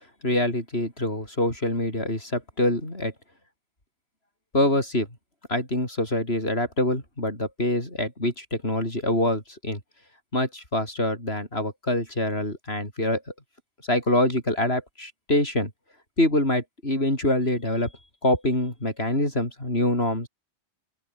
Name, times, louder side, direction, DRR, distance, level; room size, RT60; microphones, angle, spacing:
voice 1, 0.2-3.1 4.5-5.1 5.5-9.8 10.3-13.2 13.9-15.7 16.2-17.9 18.2-20.3, left 1 dB, 60° left, 7.7 m, -25 dB
open air
omnidirectional pair, 1.2 m